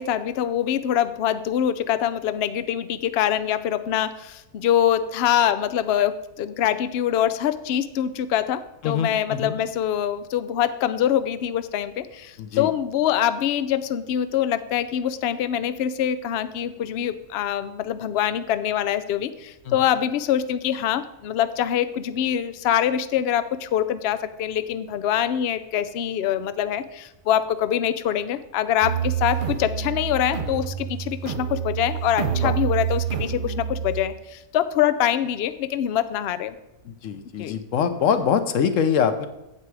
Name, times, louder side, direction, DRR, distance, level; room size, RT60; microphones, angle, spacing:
voice 1, 0.0-36.6 37.4-37.6, left 10 dB, 90° left, 12 dB, 0.5 m, -24 dB
voice 2, 8.8-9.5 12.4-12.7 32.4-32.5 36.9-39.3, left 7 dB, 60° left, 10 dB, 1.0 m, -23 dB
sound 1, 28.8-34.0, right 9 dB, 60° right, 0.5 m, -27 dB
8.7 x 7.6 x 4.7 m, 0.94 s
omnidirectional pair, 1.7 m